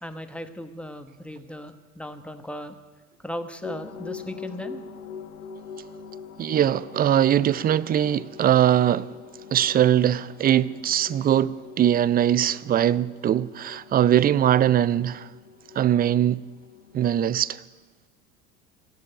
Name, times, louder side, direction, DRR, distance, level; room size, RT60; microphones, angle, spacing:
voice 1, 0.0-2.7 3.2-4.8, left 1 dB, 5° left, 1.2 m, -37 dB
sound 1, 3.6-17.4, left 6 dB, 85° left, 1.3 m, -43 dB
voice 2, 6.4-9.1 9.5-15.3 15.8-16.4 16.9-17.6, right 11 dB, 25° right, 0.4 m, -21 dB
18.5 x 7.6 x 8.9 m
hypercardioid pair, 80°, 39 cm